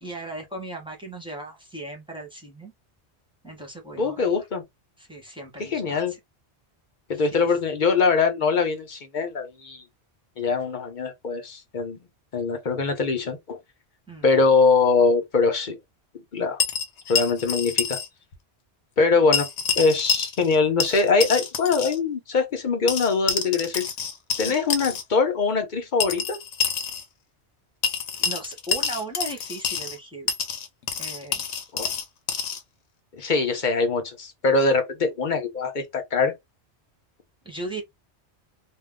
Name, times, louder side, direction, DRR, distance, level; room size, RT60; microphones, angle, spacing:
voice 1, 0.0-2.7 3.4-4.3 5.0-6.2 7.1-7.6 14.1-14.3 24.5-24.6 28.2-30.3 31.0-31.4 37.4-37.8, right 1 dB, 5° right, 0.9 m, -37 dB
voice 2, 4.0-4.6 5.6-6.1 7.1-9.8 10.4-12.0 12.3-13.6 14.2-15.8 16.3-16.6 17.1-18.0 19.0-19.5 19.8-23.9 24.4-26.4 31.7-31.9 33.2-36.3, left 4 dB, 50° left, 0.8 m, -22 dB
sound 1, 16.6-18.1 18.3-18.4 19.3-20.6 20.8-22.0 22.9-25.0 26.0-27.0 27.8-30.0 30.3-32.6, left 7 dB, 80° left, 1.0 m, -27 dB
2.7 x 2.2 x 3.4 m
omnidirectional pair, 1.2 m